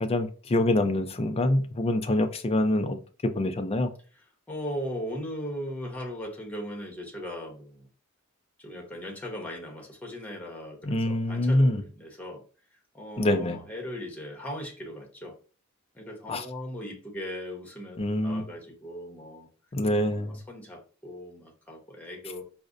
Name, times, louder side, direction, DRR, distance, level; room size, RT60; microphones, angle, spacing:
voice 1, 0.0-3.9 10.8-11.8 13.2-13.6 16.3-16.4 18.0-18.4 19.7-20.4, left 1 dB, 30° left, 8 dB, 0.4 m, -25 dB
voice 2, 4.5-7.9 8.6-12.4 12.9-15.3 15.9-19.5 20.1-22.4, equal, 5° left, 0 dB, 0.9 m, -38 dB
4.9 x 2.1 x 2.5 m, 0.38 s
head